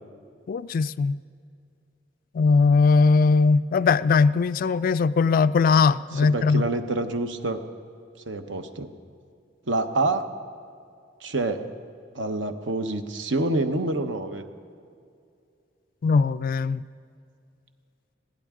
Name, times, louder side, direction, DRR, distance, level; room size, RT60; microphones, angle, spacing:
voice 1, 0.5-1.2 2.3-6.7 16.0-16.8, left 4 dB, 50° left, 16 dB, 0.3 m, -20 dB
voice 2, 6.2-7.6 8.3-8.9 9.7-10.3 11.2-11.7 12.1-14.4, right 2 dB, 75° right, 8 dB, 0.9 m, -27 dB
21.0 x 16.5 x 3.7 m, 2.4 s
head